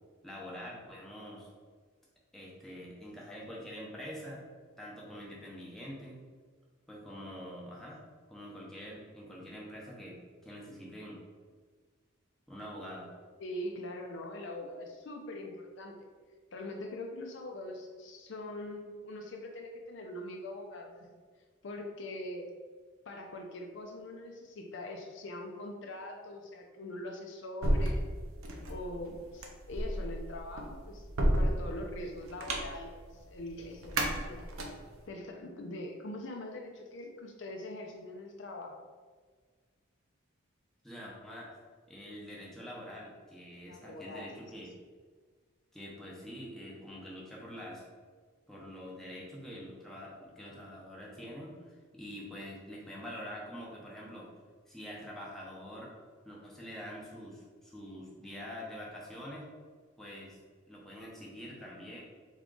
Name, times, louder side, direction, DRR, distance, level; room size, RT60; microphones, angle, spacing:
voice 1, 0.2-1.5 2.3-4.5 4.8-6.2 6.9-8.0 8.3-11.2 12.5-13.1 40.8-41.5 41.9-44.8 45.7-47.9 48.5-54.3 54.7-55.9 56.2-59.5 60.0-60.4 60.7-62.0, equal, ahead, -5 dB, 0.7 m, -45 dB
voice 2, 13.4-15.9 16.5-21.1 21.6-22.5 23.1-28.1 28.7-31.1 31.4-34.5 35.1-38.8 43.7-44.3, left 1 dB, 60° left, 2 dB, 0.5 m, -42 dB
sound 1, 27.6-35.0, right 1 dB, 85° right, 0.7 m, -32 dB
3.6 x 3.6 x 3.7 m, 1.5 s
head